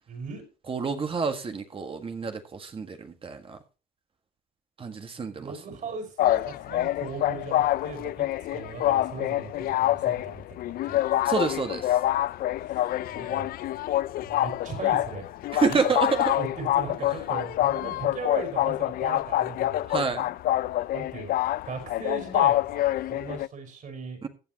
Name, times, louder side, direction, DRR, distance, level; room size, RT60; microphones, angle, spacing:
voice 1, 0.1-0.4 5.4-8.3 8.5-11.0 12.7-13.5 14.2-15.3 15.6-19.9 20.9-21.4 21.6-24.2, right 4 dB, 50° right, 7 dB, 5.3 m, -38 dB
voice 2, 0.7-3.6 4.8-5.5 11.2-12.0 15.5-16.2 19.9-20.3 24.2-24.3, right 5 dB, 30° right, 6 dB, 1.7 m, -28 dB
sound 1, 6.2-23.5, left 14 dB, 60° left, 0.4 m, -26 dB
15.5 x 9.4 x 3.0 m, 0.32 s
cardioid pair, 110°, 17 cm